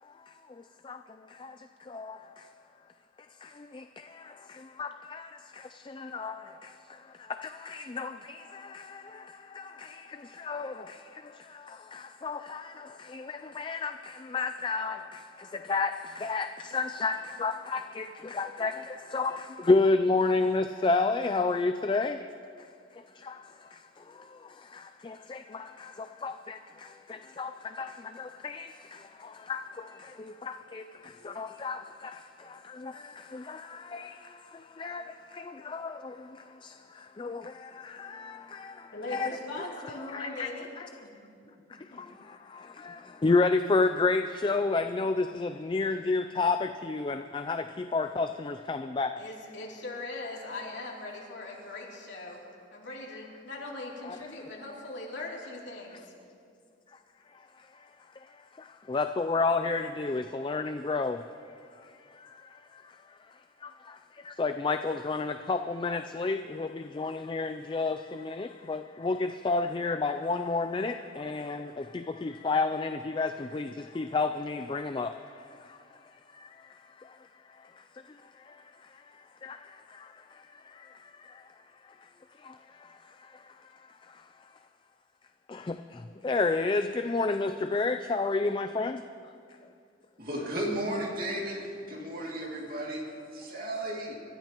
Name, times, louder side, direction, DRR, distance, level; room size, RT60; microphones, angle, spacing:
voice 1, 4.8-5.2 6.1-6.3 7.7-8.1 10.5-10.7 12.2-12.6 13.1-13.2 13.6-13.9 14.3-15.0 15.7-15.9 16.2-16.5 16.7-18.1 18.3-18.7 19.1-19.4 19.6-22.2 25.3-25.4 26.2-26.3 27.4-27.5 27.8-27.9 28.2-28.7 29.5-29.6 30.7-30.8 31.4-31.8 33.5-33.6 33.9-34.0 34.8-35.0 35.7-35.9 37.2-37.4 38.1-38.3 39.1-39.3 40.1-40.5 43.2-47.6 47.9-49.1 58.9-61.2 64.4-66.7 67.0-69.2 69.4-71.7 72.2-73.7 74.0-75.1 86.2-89.0, left 3 dB, 25° left, 8 dB, 0.3 m, -28 dB
voice 2, 38.9-40.7 41.0-41.3 41.7-42.0 49.2-52.4 52.7-56.1, left 2 dB, 70° left, -4 dB, 3.0 m, -40 dB
voice 3, 90.2-94.2, right 1 dB, 45° right, -2 dB, 2.5 m, -34 dB
27.0 x 13.5 x 3.0 m, 2.4 s
head